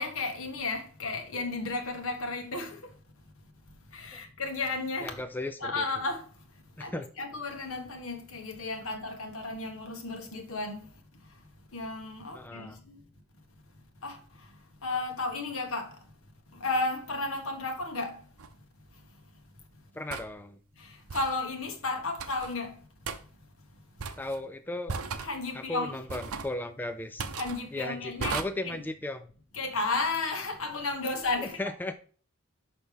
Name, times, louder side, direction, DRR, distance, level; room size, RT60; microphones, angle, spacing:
voice 1, 0.0-2.8 3.9-5.1 5.6-6.2 6.8-10.9 11.7-13.0 14.0-14.2 14.8-16.0 16.6-18.2 20.8-22.7 25.2-26.1 27.4-28.8 29.5-31.6, left 3 dB, 80° left, 1.6 m, -33 dB
voice 2, 5.0-5.8 6.9-7.1 12.3-12.8 19.9-20.6 24.2-25.0 25.5-27.2 27.7-29.3 31.6-31.9, left 1 dB, 10° left, 0.3 m, -36 dB
sound 1, 18.4-18.5 20.1-20.3 21.1-21.4 22.2-22.5 23.1-23.2 24.0-24.4 24.9-25.3 26.1-26.5 27.2-27.6 28.2-28.4, right 5 dB, 90° right, 0.8 m, -35 dB
6.3 x 5.7 x 3.4 m
head